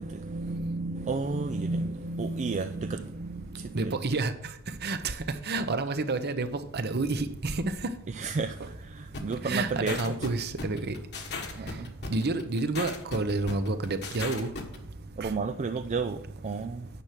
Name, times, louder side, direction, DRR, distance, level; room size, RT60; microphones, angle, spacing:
voice 1, 0.0-4.0 8.1-10.0 11.6-11.9 15.2-16.9, right 3 dB, 35° right, 0.4 m, -32 dB
voice 2, 3.7-4.3 4.8-5.1 5.4-7.6 9.4-10.9 12.1-14.5 15.2-15.3, right 3 dB, 50° right, 0.8 m, -29 dB
sound 1, 9.1-14.8, left 4 dB, 55° left, 1.5 m, -37 dB
9.7 x 6.1 x 5.8 m
head